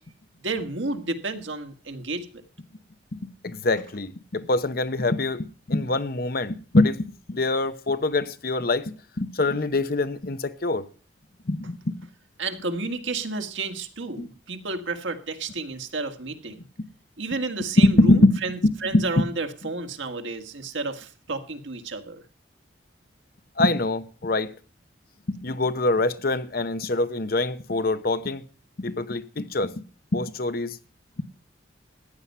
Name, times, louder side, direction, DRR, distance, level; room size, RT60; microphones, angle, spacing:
voice 1, 0.4-2.4 12.4-16.6 17.2-22.2, right 3 dB, 90° right, 1.8 m, -31 dB
voice 2, 3.1-7.0 7.3-10.8 11.5-12.0 14.2-14.3 17.8-18.3 18.6-19.2 23.6-24.5 25.3-28.4 28.8-29.7 30.1-30.8, left 2 dB, 50° left, 0.9 m, -24 dB
14.5 x 9.6 x 5.5 m
head